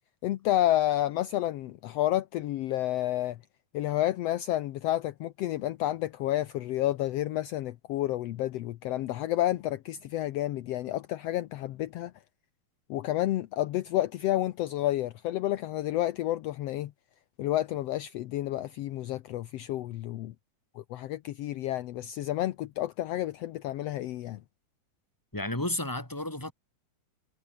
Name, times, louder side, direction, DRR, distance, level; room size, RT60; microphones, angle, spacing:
voice 1, 0.2-3.4 3.7-12.1 12.9-16.9 17.4-20.3 20.9-24.4, left 14 dB, 75° left, 1.5 m, -30 dB
voice 2, 25.3-26.5, left 1 dB, 5° left, 3.7 m, -32 dB
omnidirectional pair, 3.7 m